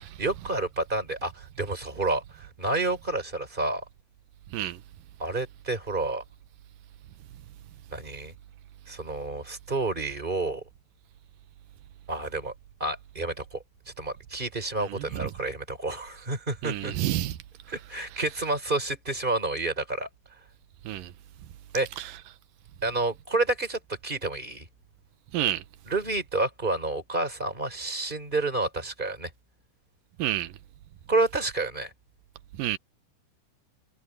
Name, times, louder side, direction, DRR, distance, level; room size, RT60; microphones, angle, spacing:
voice 1, 0.2-3.8 5.2-6.2 7.9-8.3 8.9-10.6 12.1-12.5 12.8-16.9 17.7-20.1 21.7-21.9 22.8-24.7 25.9-29.3 31.1-31.9, right 2 dB, 15° right, 4.2 m, -29 dB
voice 2, 14.9-15.3 16.6-17.4 20.9-21.1 22.0-22.1 25.3-25.6 30.2-30.5 32.6-32.8, right 14 dB, 75° right, 2.4 m, -29 dB
omnidirectional pair, 4.3 m